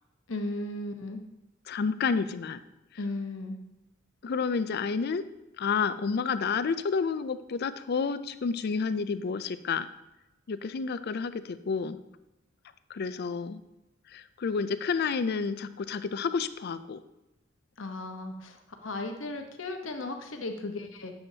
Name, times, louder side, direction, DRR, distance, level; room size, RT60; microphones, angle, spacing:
voice 1, 0.3-1.2 3.0-3.6 17.8-21.1, left 2 dB, 75° left, 5 dB, 1.0 m, -36 dB
voice 2, 1.7-2.6 4.2-5.3 5.6-9.9 10.5-12.0 12.9-13.6 14.1-17.0, left 5 dB, 55° left, 13 dB, 0.4 m, -30 dB
9.9 x 7.1 x 2.8 m, 0.95 s
head